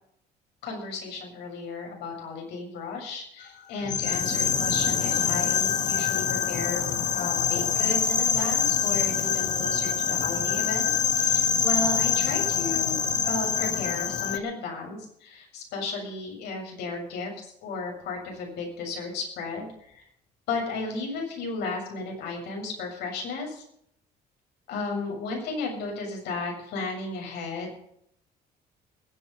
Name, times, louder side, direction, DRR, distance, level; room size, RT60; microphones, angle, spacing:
voice 1, 0.6-20.0 20.5-23.6 24.7-27.7, left 3 dB, 85° left, 1 dB, 7.3 m, -34 dB
sound 1, 3.8-14.4, left 7 dB, 45° left, 1.6 m, -25 dB
20.5 x 9.4 x 5.6 m, 0.69 s
cardioid pair, 110°, 17 cm